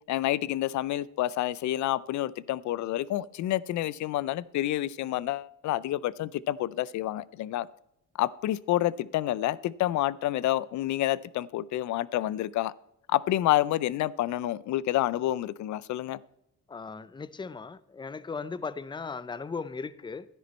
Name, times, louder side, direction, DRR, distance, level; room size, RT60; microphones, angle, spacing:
voice 1, 0.1-7.7 8.2-12.7 13.1-16.2, left 14 dB, 70° left, 0.5 m, -28 dB
voice 2, 16.7-20.3, left 4 dB, 15° left, 0.5 m, -37 dB
12.5 x 10.5 x 4.3 m
cardioid pair, 90°, 30 cm